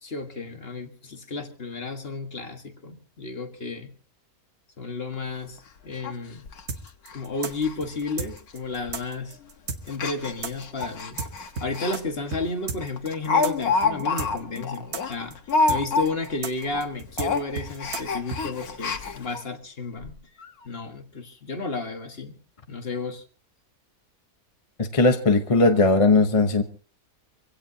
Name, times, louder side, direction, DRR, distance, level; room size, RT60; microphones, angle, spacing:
voice 1, 0.0-3.9 4.8-6.4 7.1-9.4 9.9-11.2 11.6-15.4 15.7-20.1 20.6-22.3 22.7-23.2, left 3 dB, 40° left, 1.8 m, -32 dB
Speech, 5.1-5.2 5.6-5.7 6.0-6.1 6.5-6.6 7.1-7.2 7.5-7.7 8.0-8.1 8.9-9.1 9.9-12.0 12.3-12.4 12.8-16.4 16.6-16.8 17.1-19.4 20.0-20.1 20.4-20.5, left 4 dB, 85° left, 1.8 m, -27 dB
sound 1, 6.7-12.0 12.3-12.4 12.7-18.4, right 4 dB, 50° right, 1.4 m, -33 dB
voice 2, 24.8-26.6, left 3 dB, 25° left, 1.0 m, -18 dB
25.0 x 16.5 x 2.8 m
omnidirectional pair, 1.6 m